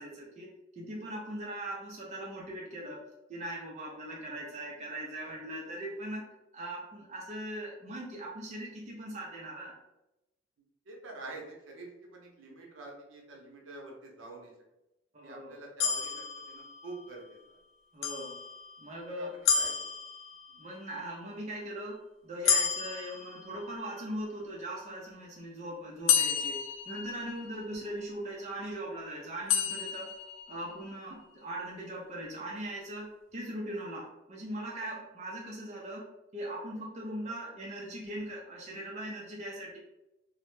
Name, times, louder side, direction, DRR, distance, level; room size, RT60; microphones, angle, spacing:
voice 1, 0.0-3.0 3.3-6.3 6.5-9.8 15.1-15.6 17.9-18.4 18.8-19.3 20.6-22.0 22.2-30.1 30.5-36.1 36.3-39.8, right 1 dB, 35° right, -2 dB, 0.4 m, -40 dB
voice 2, 10.9-14.5 15.2-17.4 19.1-19.7, right 2 dB, 80° right, -1 dB, 0.6 m, -47 dB
sound 1, 15.8-17.1 18.0-18.9 19.4-20.7 22.4-24.0 26.1-27.7 29.5-30.7, left 7 dB, 90° left, 0.4 m, -31 dB
2.1 x 2.0 x 3.0 m, 0.92 s
head